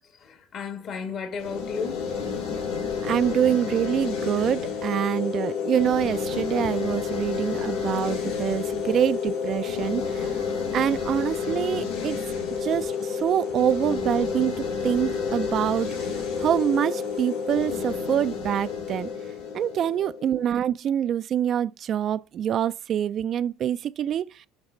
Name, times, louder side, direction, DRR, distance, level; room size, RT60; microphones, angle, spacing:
voice 1, 0.2-2.1 8.4-9.1, left 5 dB, 45° left, 1.5 m, -35 dB
sound 1, 1.4-20.5, left 6 dB, 80° left, 3.9 m, -30 dB
voice 2, 3.0-10.3 10.7-12.2 12.6-14.5 14.8-15.9 16.4-19.1 19.5-24.3, right 10 dB, 45° right, 0.4 m, -25 dB
8.7 x 4.0 x 4.9 m
supercardioid pair, 100°, 0 cm